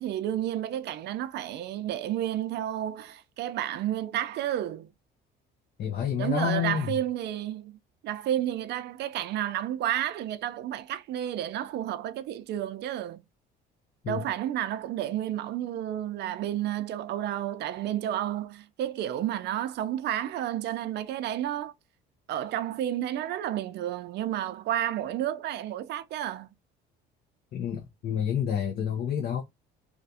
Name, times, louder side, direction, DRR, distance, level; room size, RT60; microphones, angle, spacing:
voice 1, 0.0-4.9 6.2-7.8 8.0-13.2 14.1-21.7 22.3-26.5, right 11 dB, 60° right, 0.4 m, -31 dB
voice 2, 5.8-7.0 14.0-14.3 27.5-29.4, left 8 dB, 50° left, 0.6 m, -29 dB
2.4 x 2.3 x 2.6 m
cardioid pair, 105°, 20 cm